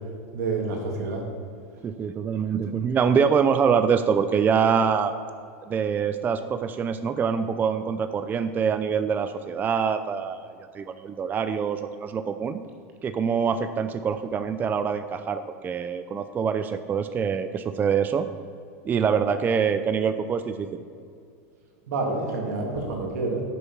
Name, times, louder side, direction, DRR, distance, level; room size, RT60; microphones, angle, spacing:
voice 1, 0.3-1.2 21.9-23.4, right 3 dB, 80° right, 1 dB, 2.4 m, -28 dB
voice 2, 1.8-5.1 5.7-12.6 13.0-18.3 18.8-20.8, right 6 dB, 20° right, 10 dB, 0.4 m, -25 dB
9.2 x 7.1 x 5.5 m, 2.4 s
supercardioid pair, 125°, 9 cm